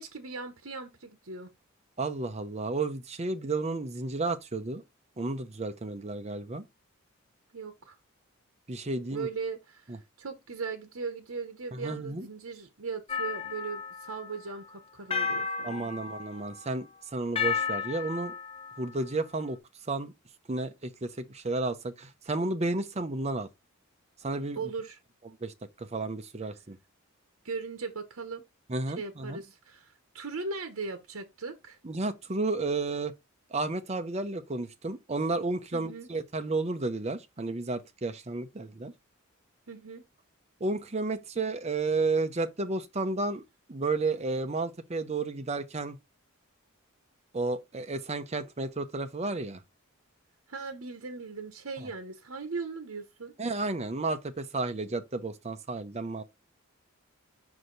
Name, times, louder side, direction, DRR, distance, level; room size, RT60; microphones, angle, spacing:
voice 1, 0.0-1.5 7.5-7.9 9.1-15.8 24.5-25.0 27.4-28.4 28.9-31.8 35.7-36.1 39.7-40.0 50.5-53.3, right 4 dB, 75° right, 0.9 m, -38 dB
voice 2, 2.0-4.8 5.2-6.7 8.7-9.3 9.9-10.0 11.7-12.3 15.6-18.3 18.8-19.6 19.9-20.1 20.5-23.5 24.2-24.7 25.4-26.8 28.7-29.4 31.8-33.1 33.5-38.9 40.6-43.4 43.7-46.0 47.3-49.6 51.8-51.9 53.4-56.2, right 3 dB, 30° right, 0.6 m, -32 dB
sound 1, 13.1-14.4 15.1-16.6 17.4-18.9, left 6 dB, 25° left, 0.5 m, -33 dB
5.5 x 4.9 x 3.9 m
head